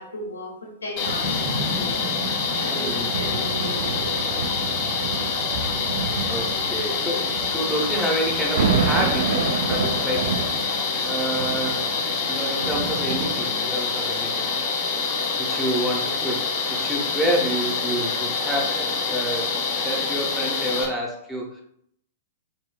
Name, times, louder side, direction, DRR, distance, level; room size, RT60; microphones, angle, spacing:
voice 1, 0.0-2.0 2.5-4.2 7.4-7.7 10.9-11.3, left 1 dB, 85° left, 0 dB, 0.7 m, -36 dB
sound 1, 1.0-20.9, left 5 dB, 40° left, 0.6 m, -26 dB
sound 2, 1.0-13.8 14.5-14.6, right 4 dB, 60° right, 0.7 m, -30 dB
Boom, 1.2-4.6, left 1 dB, 40° right, 1.4 m, -34 dB
voice 2, 2.7-3.1 5.6-5.8 6.2-10.7 11.0-11.9 12.3-14.5 15.4-21.6, right 1 dB, 5° right, -1 dB, 0.7 m, -29 dB
3.5 x 2.2 x 2.2 m, 0.69 s
figure-of-eight pair, 105°, 0 cm